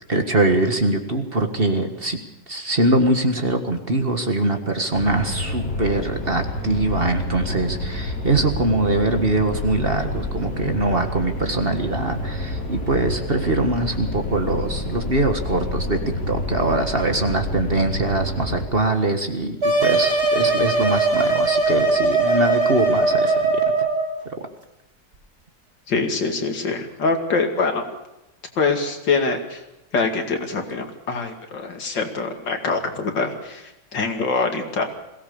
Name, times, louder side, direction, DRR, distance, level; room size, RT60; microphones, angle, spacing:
voice 1, 0.1-2.2 2.5-16.0 16.3-23.5, right 2 dB, 35° right, 6 dB, 1.7 m, -22 dB
sound 1, 4.9-18.6, left 1 dB, 55° left, 3.4 m, -28 dB
sound 2, 19.6-24.1, right 3 dB, 60° right, 5.8 m, -20 dB
voice 2, 25.9-27.9 28.6-29.6 29.9-34.9, left 4 dB, 80° left, 5 dB, 2.9 m, -24 dB
22.0 x 17.5 x 7.0 m, 0.92 s
omnidirectional pair, 1.9 m